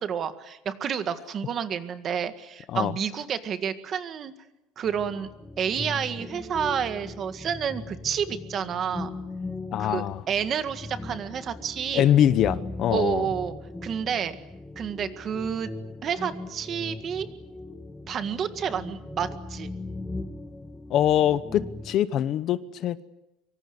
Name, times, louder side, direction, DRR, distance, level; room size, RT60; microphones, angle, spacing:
voice 1, 0.0-4.3 4.8-5.3 5.6-9.1 9.8-12.1 12.9-13.5 13.8-14.4 14.8-15.7 16.0-17.3 18.1-19.7, right 8 dB, 30° right, 1.8 m, -29 dB
sound 1, 4.8-22.0, left 2 dB, 5° left, 1.0 m, -39 dB
voice 2, 9.7-10.2 11.9-13.2 20.9-23.0, left 11 dB, 40° left, 0.9 m, -23 dB
25.0 x 24.5 x 7.9 m
cardioid pair, 170°, 0 cm